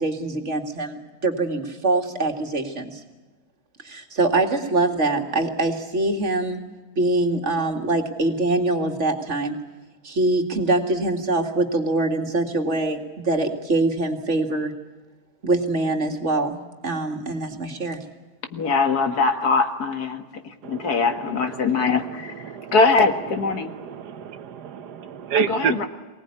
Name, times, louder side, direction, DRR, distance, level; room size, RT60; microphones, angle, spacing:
voice 1, 0.0-3.0 3.8-6.6 7.0-9.6 10.0-13.0 13.2-14.7 15.4-18.0, right 2 dB, 45° right, 5 dB, 2.4 m, -24 dB
voice 2, 18.5-22.4 22.7-23.8 25.3-25.9, left 4 dB, 75° left, 7 dB, 2.1 m, -22 dB
voice 3, 23.6-25.8, right 9 dB, 85° right, 11 dB, 1.6 m, -28 dB
24.0 x 18.5 x 9.8 m, 1.2 s
omnidirectional pair, 1.7 m